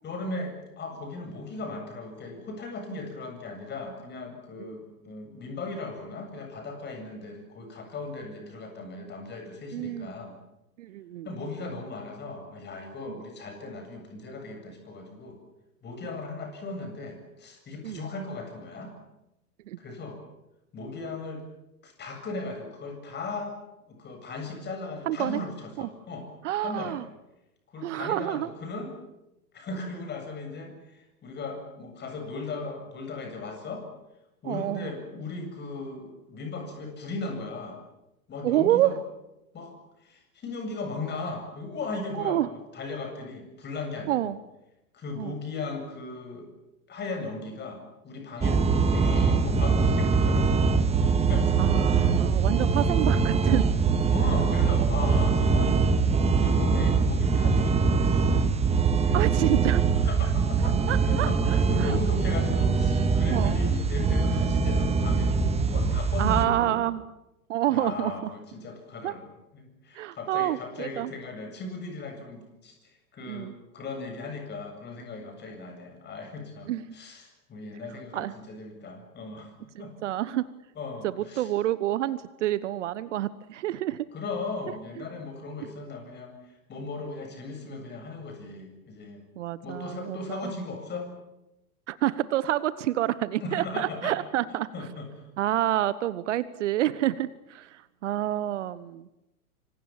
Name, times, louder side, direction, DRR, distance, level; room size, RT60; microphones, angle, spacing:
voice 1, 0.0-10.4 11.2-15.4 15.8-18.9 19.8-20.2 20.7-21.4 21.8-23.5 23.9-26.3 26.6-27.0 27.7-28.9 29.5-33.8 34.4-37.8 38.3-39.0 39.5-39.7 40.0-44.3 44.9-46.5 46.9-50.6 51.0-51.5 51.9-52.3 54.1-55.8 56.4-58.7 59.0-59.2 60.1-60.8 61.0-66.8 67.7-72.7 73.1-79.5 79.8-79.9 80.8-81.5 84.1-89.2 89.6-91.1 93.4-94.1 94.5-95.3, left 3 dB, 20° left, 5 dB, 8.0 m, -37 dB
voice 2, 9.7-10.1 10.8-11.3 17.8-18.0 19.7-19.8 25.1-25.4 25.8-25.9 26.4-27.0 27.8-28.5 34.4-34.9 38.4-38.9 42.1-42.5 44.1-44.4 45.2-45.4 48.4-48.6 51.6-53.7 55.6-55.8 59.1-59.8 60.9-61.3 61.8-62.0 63.3-63.6 66.2-67.0 67.5-68.3 69.0-69.1 69.9-71.1 73.3-73.5 76.7-76.9 78.1-78.3 79.7-80.5 81.0-84.1 89.4-90.5 91.9-94.7 95.4-99.1, right 13 dB, 50° right, 17 dB, 1.2 m, -28 dB
sound 1, 48.4-66.5, right 5 dB, 15° right, 1.9 m, -23 dB
26.0 x 26.0 x 7.4 m, 0.92 s
figure-of-eight pair, 100°, 46 cm